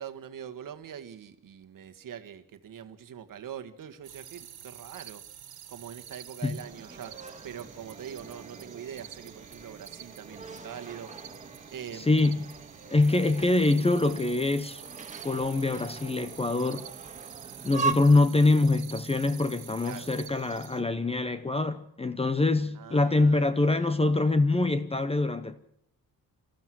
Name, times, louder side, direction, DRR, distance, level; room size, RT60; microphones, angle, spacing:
voice 1, 0.0-5.2 5.7-7.1 7.4-11.1 11.7-12.2 13.1-13.2 19.8-20.1 22.7-24.0, right 9 dB, 65° right, 1.5 m, -43 dB
sound 1, 4.0-20.8, right 11 dB, 85° right, 1.9 m, -48 dB
sound 2, 6.6-17.9, right 5 dB, 20° right, 1.8 m, -40 dB
voice 2, 11.9-12.4 12.9-14.8 15.2-16.9 17.6-25.6, left 2 dB, 15° left, 0.9 m, -24 dB
25.5 x 14.5 x 7.7 m
wide cardioid pair, 140°, 36 cm